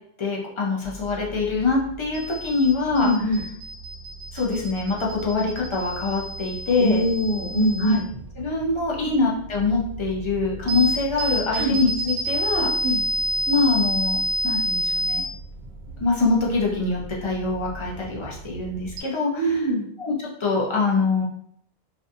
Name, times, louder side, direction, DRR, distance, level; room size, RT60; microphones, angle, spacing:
voice 1, 0.2-3.1 4.3-7.0 7.8-8.0 8.4-12.9 13.5-15.2 16.0-19.7 20.0-20.1 20.4-21.2, left 3 dB, 35° left, -3 dB, 0.5 m, -24 dB
sound 1, 0.8-19.0, right 1 dB, 85° right, 0.9 m, -30 dB
voice 2, 3.0-3.4 6.8-8.0 11.5-11.8 12.5-13.0 19.4-19.9, equal, 55° right, -5 dB, 0.6 m, -23 dB
2.5 x 2.3 x 2.6 m, 0.67 s
omnidirectional pair, 1.1 m